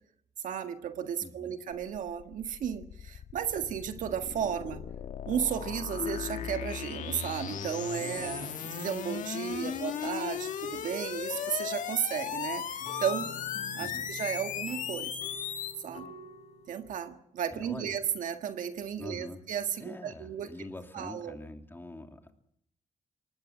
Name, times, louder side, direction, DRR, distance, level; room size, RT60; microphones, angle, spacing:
voice 1, 0.4-4.8 5.2-13.3 13.7-15.2 15.8-16.1 16.7-20.5 20.9-21.4, right 8 dB, 80° right, 7 dB, 1.7 m, -34 dB
voice 2, 1.2-1.5 8.2-8.7 9.5-9.8 13.8-14.1 17.5-17.9 19.0-19.4 19.8-22.3, left 2 dB, 15° left, 4 dB, 2.9 m, -45 dB
sound 1, 1.7-15.9, left 8 dB, 75° left, 1.7 m, -37 dB
sound 2, 5.7-17.0, left 5 dB, 55° left, 4.6 m, -46 dB
23.5 x 19.5 x 7.4 m, 0.74 s
cardioid pair, 90°, 13 cm